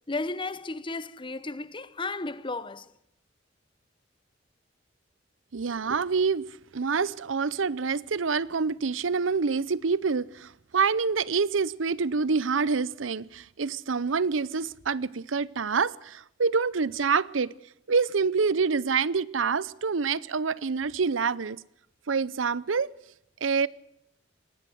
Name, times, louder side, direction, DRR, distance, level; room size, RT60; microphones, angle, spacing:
voice 1, 0.1-2.9, left 3 dB, 25° left, 0.9 m, -34 dB
voice 2, 5.5-6.4 6.7-17.5 17.9-21.6 22.1-22.9 23.4-23.7, right 5 dB, 85° right, 0.7 m, -26 dB
20.0 x 16.5 x 7.9 m
head